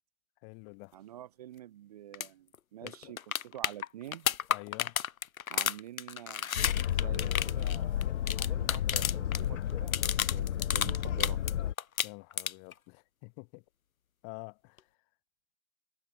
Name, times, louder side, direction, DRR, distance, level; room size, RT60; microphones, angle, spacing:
voice 1, 0.4-1.0 2.8-3.1 4.5-5.0 12.0-13.6 14.2-14.8, left 40 dB or more, 15° left, 1.7 m, -48 dB
voice 2, 0.9-4.3 5.5-6.5 6.9-11.4, right 12 dB, 30° right, 1.3 m, -47 dB
sound 1, 2.1-2.3 2.5-2.6 2.9-9.4 9.7-11.5 11.8-12.7 14.8-14.9, left 8 dB, 75° left, 1.6 m, -32 dB
Boat Water vehicle, 6.5-11.7, left 10 dB, 60° left, 0.6 m, -32 dB
hypercardioid pair, 170°, 42 cm